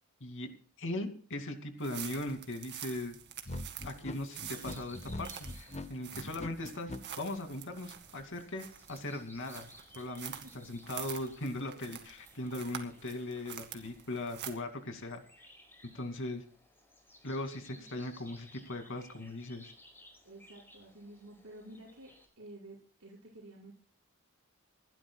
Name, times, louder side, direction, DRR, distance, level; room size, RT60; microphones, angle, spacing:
voice 1, 0.2-0.5 0.8-3.2 3.8-9.7 9.9-15.2 15.9-16.4 17.2-19.7, left 1 dB, 60° left, 5 dB, 2.6 m, -39 dB
sound 1, 1.8-14.5, right 9 dB, 50° right, 2.1 m, -47 dB
sound 2, 3.5-7.0, left 1 dB, 30° left, 0.8 m, -41 dB
sound 3, 3.9-22.3, left 1 dB, 10° left, 5.0 m, -60 dB
voice 2, 20.2-23.7, right 1 dB, 70° right, -5 dB, 6.0 m, -52 dB
27.0 x 12.0 x 2.3 m, 0.42 s
head